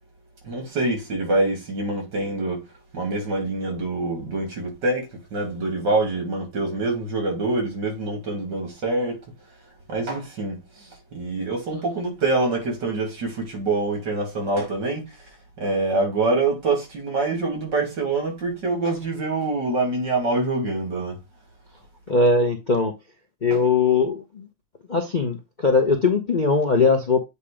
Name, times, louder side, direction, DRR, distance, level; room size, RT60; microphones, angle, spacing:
voice 1, 0.4-2.6 2.9-9.2 9.9-15.1 15.6-21.2 23.5-23.6, right 2 dB, 70° right, 3.3 m, -25 dB
voice 2, 22.1-22.9 23.4-24.5 24.9-27.2, left 4 dB, 40° left, 0.7 m, -20 dB
8.2 x 2.8 x 4.9 m
omnidirectional pair, 2.0 m